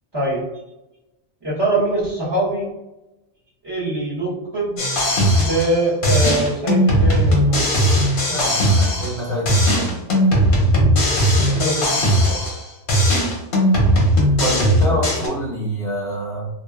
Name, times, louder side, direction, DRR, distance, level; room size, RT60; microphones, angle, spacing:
voice 1, 0.1-0.4 1.4-2.7 3.6-4.8 5.3-7.7 11.4-12.4, right 1 dB, 25° right, -8 dB, 0.8 m, -23 dB
sound 1, 4.8-5.8 6.0-9.2 9.5-12.6 12.9-15.3, equal, 60° left, 0.7 m, -17 dB
voice 2, 8.3-10.0 14.4-16.5, equal, 5° left, -8 dB, 0.7 m, -26 dB
2.7 x 2.1 x 2.2 m, 0.98 s
omnidirectional pair, 1.1 m